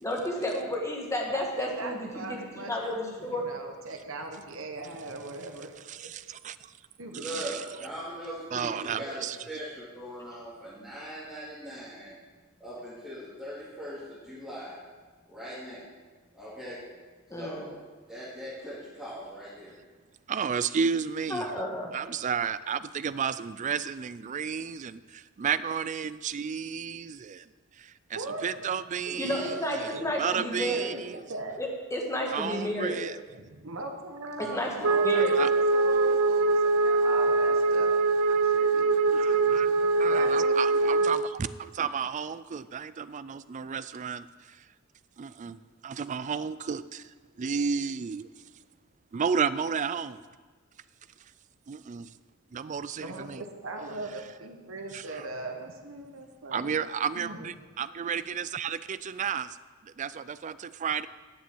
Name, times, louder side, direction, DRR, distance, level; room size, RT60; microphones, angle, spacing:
voice 1, 0.0-3.4 17.3-17.6 21.3-21.9 29.2-31.0 31.6-33.0 34.4-34.8 35.0-35.4, left 1 dB, 15° left, 0 dB, 1.7 m, -31 dB
voice 2, 1.3-5.8 6.0-6.1 7.0-7.4 28.1-28.8 29.1-29.4 29.9-30.1 30.6-31.6 33.3-41.1 53.0-56.7 57.1-57.5, right 2 dB, 65° right, 4 dB, 1.4 m, -40 dB
voice 3, 5.9-6.6 7.2-7.6 8.5-9.4 20.3-27.4 27.8-27.9 28.4-29.9 30.2-31.2 32.3-33.2 35.1-35.5 39.2-39.7 40.0-44.3 45.2-47.0 47.4-48.3 49.1-50.2 51.7-52.1 52.5-53.4 54.9-55.2 56.5-59.6 59.8-61.1, right 6 dB, 35° right, 15 dB, 0.3 m, -32 dB
voice 4, 7.1-12.2 12.6-14.8 15.3-15.9 16.3-16.8 17.4-17.8 18.0-19.7, equal, ahead, -12 dB, 2.7 m, -40 dB
Wind instrument woodwind instrument, 34.8-41.3, right 3 dB, 80° right, 0.6 m, -23 dB
10.5 x 7.1 x 7.7 m, 1.4 s
head